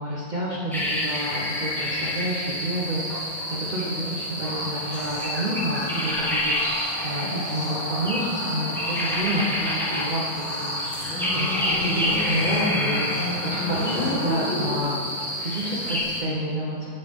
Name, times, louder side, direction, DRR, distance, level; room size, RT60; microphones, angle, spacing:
voice 1, 0.0-3.2 3.6-10.2 10.6-10.8 11.3-15.0 15.4-16.9, equal, 70° right, -6 dB, 0.4 m, -29 dB
sound 1, 0.7-16.2, equal, ahead, 0.5 m, -28 dB
sound 2, 4.4-14.8, equal, 65° left, 2.1 m, -35 dB
Motorcycle, 10.9-15.3, left 2 dB, 80° left, 1.8 m, -31 dB
8.3 x 6.8 x 3.6 m, 2.2 s
omnidirectional pair, 2.2 m